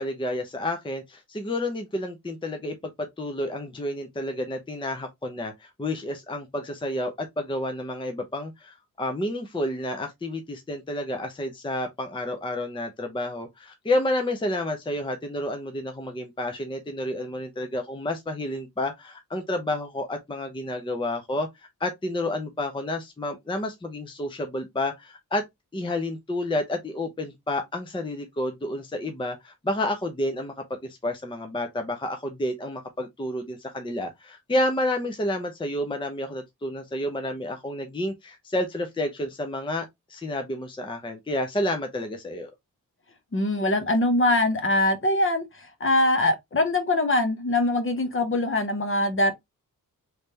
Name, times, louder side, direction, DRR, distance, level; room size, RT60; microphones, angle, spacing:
voice 1, 0.0-25.4 25.7-30.5 30.8-42.5, left 1 dB, 15° left, 0.6 m, -30 dB
voice 2, 43.3-45.4 45.8-49.3, left 1 dB, 35° left, 0.9 m, -23 dB
3.3 x 3.2 x 2.7 m
wide cardioid pair, 90°, 34 cm